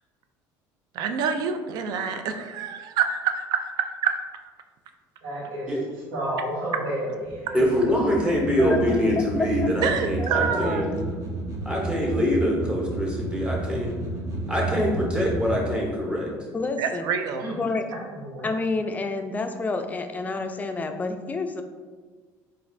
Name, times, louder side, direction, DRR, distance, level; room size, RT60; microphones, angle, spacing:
voice 1, 1.0-3.7 4.0-4.1 9.8-10.8 16.8-17.4, right 7 dB, 65° right, 7 dB, 0.3 m, -26 dB
voice 2, 5.2-5.7 6.1-7.6 8.6-8.7 17.4-17.6 17.9-18.5, right 1 dB, 85° right, -5 dB, 1.2 m, -31 dB
sound 1, 7.2-15.6, right 2 dB, 40° right, 0.8 m, -32 dB
voice 3, 7.5-10.9 11.6-14.0 14.5-16.3, equal, 15° right, -2 dB, 0.9 m, -24 dB
voice 4, 10.2-11.1 16.5-17.0 17.5-17.8 18.4-21.6, left 3 dB, 20° left, 6 dB, 0.3 m, -29 dB
4.0 x 2.4 x 2.6 m, 1.4 s
supercardioid pair, 95°, 8 cm